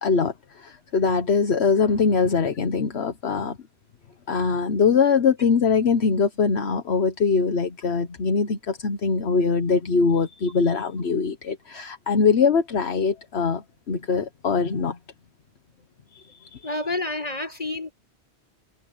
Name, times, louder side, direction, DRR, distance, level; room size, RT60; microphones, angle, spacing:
voice 1, 0.0-3.6 4.3-15.0 16.1-16.6, left 5 dB, 75° left, 1.4 m, -22 dB
voice 2, 16.6-17.9, left 2 dB, 35° left, 5.1 m, -29 dB
omnidirectional pair, 1.1 m